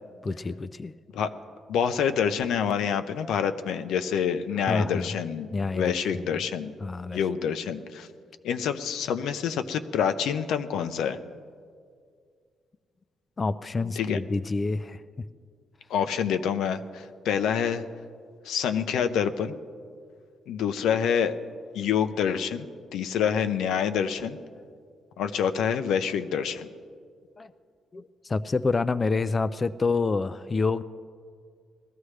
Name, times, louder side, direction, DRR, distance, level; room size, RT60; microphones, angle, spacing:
voice 1, 0.2-0.9 4.6-5.1 5.5-6.0 6.8-7.2 13.4-15.0 27.4-27.5 27.9-30.8, left 3 dB, 25° left, 13 dB, 0.3 m, -27 dB
voice 2, 1.7-6.7 7.1-8.1 8.4-11.2 14.0-14.2 15.9-17.8 18.4-19.5 20.5-21.4 21.7-24.4 25.2-26.7, left 7 dB, 85° left, 9 dB, 0.6 m, -27 dB
20.5 x 14.0 x 3.3 m, 2.1 s
cardioid pair, 125°, 0 cm